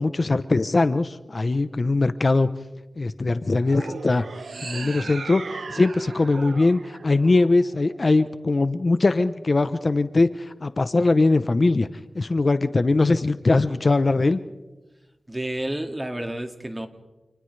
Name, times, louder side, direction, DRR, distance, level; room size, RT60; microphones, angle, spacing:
voice 1, 0.0-2.5 3.0-4.3 4.6-5.4 5.7-11.9 12.1-14.4, left 3 dB, 45° left, 11 dB, 0.8 m, -21 dB
sound 1, 3.6-8.0, right 4 dB, 80° right, 1.0 m, -37 dB
voice 2, 15.3-16.9, right 1 dB, 20° right, 5 dB, 2.2 m, -30 dB
29.0 x 28.5 x 3.3 m, 1.1 s
wide cardioid pair, 70°, 0 cm